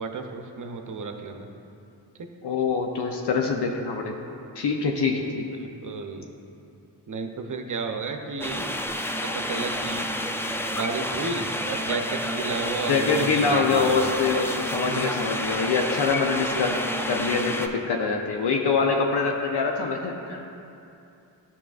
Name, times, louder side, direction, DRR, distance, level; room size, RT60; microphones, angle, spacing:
voice 1, 0.0-1.5 2.2-2.3 5.6-6.3 7.1-8.8 9.2-10.1 10.7-14.1 14.9-15.1, right 4 dB, 40° right, 4 dB, 0.7 m, -32 dB
voice 2, 2.4-4.1 4.6-5.4 12.9-16.8 17.1-20.4, left 4 dB, 55° left, 1 dB, 0.7 m, -24 dB
sound 1, 8.4-17.7, equal, 5° left, 0.4 m, -30 dB
10.5 x 5.7 x 2.5 m, 2.7 s
supercardioid pair, 50°, 47 cm